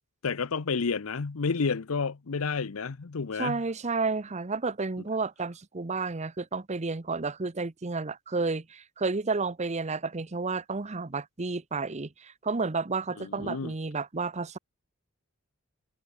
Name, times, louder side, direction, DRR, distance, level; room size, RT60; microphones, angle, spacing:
voice 1, 0.2-3.6 13.2-13.7, left 5 dB, 70° left, 0.7 m, -30 dB
voice 2, 3.4-14.6, right 4 dB, 30° right, 0.8 m, -31 dB
head